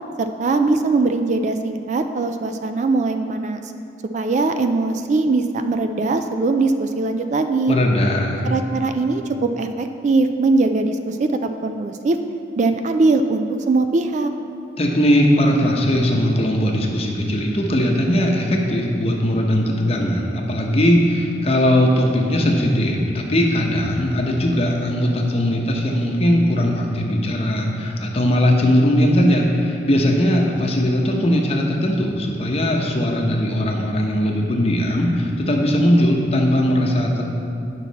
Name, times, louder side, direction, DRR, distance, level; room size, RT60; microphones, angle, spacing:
voice 1, 0.2-3.6 4.1-7.7 8.4-12.2 12.6-14.3, right 3 dB, 40° right, 7 dB, 0.3 m, -21 dB
voice 2, 7.7-8.5 14.8-37.3, equal, 35° left, 0 dB, 0.8 m, -19 dB
9.1 x 5.7 x 4.1 m, 2.6 s
head